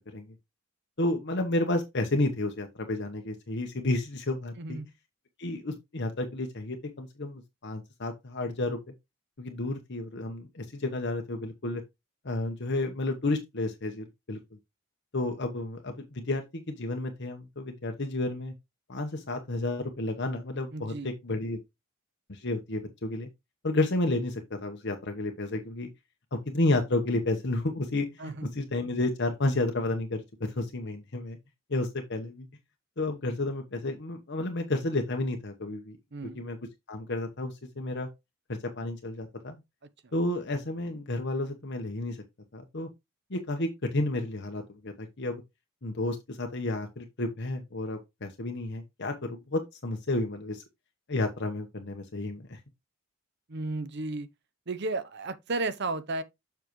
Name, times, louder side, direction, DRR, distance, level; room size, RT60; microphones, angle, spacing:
voice 1, 1.0-4.8 5.4-8.8 9.4-11.8 12.2-14.4 15.1-18.5 18.9-21.6 22.3-23.3 23.6-25.9 26.3-30.2 30.6-31.4 31.7-32.5 33.0-36.0 36.3-36.6 36.9-38.1 38.8-39.6 40.1-42.2 42.5-42.9 43.3-45.4 45.8-50.6 51.1-52.6, left 2 dB, 55° left, 1.1 m, -31 dB
voice 2, 4.6-4.9 20.7-21.1 28.2-28.5 36.1-36.4 53.5-54.3 54.7-56.2, right 2 dB, 50° right, 0.8 m, -33 dB
7.3 x 5.8 x 3.1 m
head